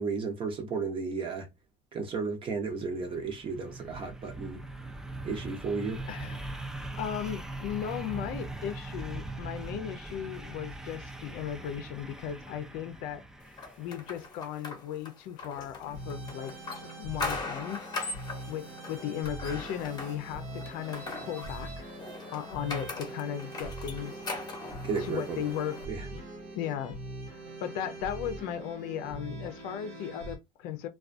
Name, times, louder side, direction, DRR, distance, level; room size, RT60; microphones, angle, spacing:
voice 1, 0.0-1.5 1.9-4.6 5.2-6.1 24.8-25.4 25.9-26.0, right 4 dB, 35° right, 0.8 m, -33 dB
sound 1, 2.6-14.3, right 2 dB, 5° right, 0.3 m, -41 dB
voice 2, 6.1-6.5 7.0-13.2 13.8-16.5 17.0-17.9 18.5-21.9 22.3-24.3 25.0-25.8 26.1-26.2 26.5-27.0 27.3-30.9, left 9 dB, 70° left, 0.5 m, -36 dB
sound 2, 13.6-25.8, left 3 dB, 25° left, 0.8 m, -40 dB
sound 3, 15.9-30.4, right 2 dB, 90° right, 1.0 m, -42 dB
2.3 x 2.3 x 2.5 m
cardioid pair, 130°, 15 cm